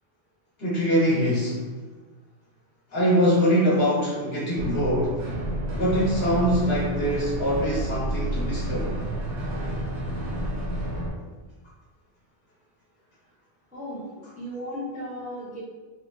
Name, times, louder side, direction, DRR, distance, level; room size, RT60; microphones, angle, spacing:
voice 1, 0.6-1.6 2.9-5.3 5.8-9.0, equal, 65° left, -7 dB, 1.2 m, -23 dB
sound 1, 4.6-11.1, equal, 75° right, 1.0 m, -30 dB
voice 2, 13.7-14.0 14.4-15.6, equal, 10° right, -8 dB, 0.5 m, -35 dB
3.4 x 2.1 x 2.4 m, 1.3 s
omnidirectional pair, 1.2 m